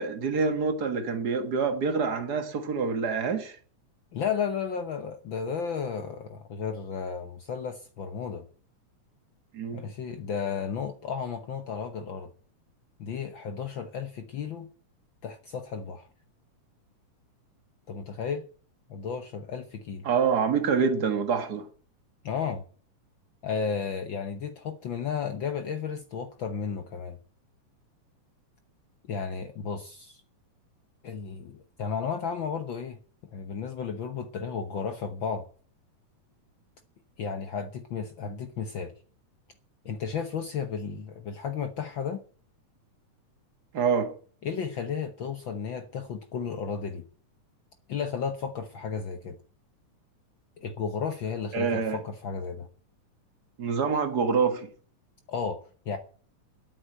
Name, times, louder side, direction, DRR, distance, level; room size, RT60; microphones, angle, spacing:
voice 1, 0.0-3.6 9.5-9.9 20.0-21.7 43.7-44.1 51.5-52.0 53.6-54.7, right 5 dB, 40° right, 1.5 m, -26 dB
voice 2, 4.1-8.4 9.7-12.3 13.0-14.7 15.2-16.1 17.9-18.4 18.9-20.1 22.2-22.6 23.4-27.2 29.1-30.2 31.0-33.0 33.3-35.4 37.2-38.9 39.8-42.2 44.4-47.0 47.9-49.4 50.6-52.7 55.3-56.0, left 6 dB, 80° left, 1.1 m, -33 dB
11.5 x 8.8 x 7.8 m
omnidirectional pair, 3.6 m